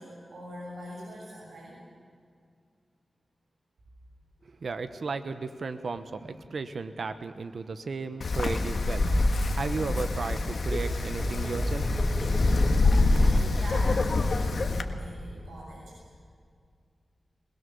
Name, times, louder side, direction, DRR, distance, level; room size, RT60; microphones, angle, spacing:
voice 1, 0.0-1.8 6.2-6.3 13.1-16.2, equal, 90° right, -4 dB, 6.9 m, -43 dB
voice 2, 4.6-9.1 9.5-11.9, right 4 dB, 65° right, 10 dB, 1.1 m, -34 dB
Wind, 8.2-14.8, left 3 dB, 70° left, 1.6 m, -26 dB
sound 1, 8.3-13.4, right 1 dB, 30° right, 2.9 m, -33 dB
21.5 x 20.5 x 7.0 m, 2.2 s
wide cardioid pair, 75°, 0 cm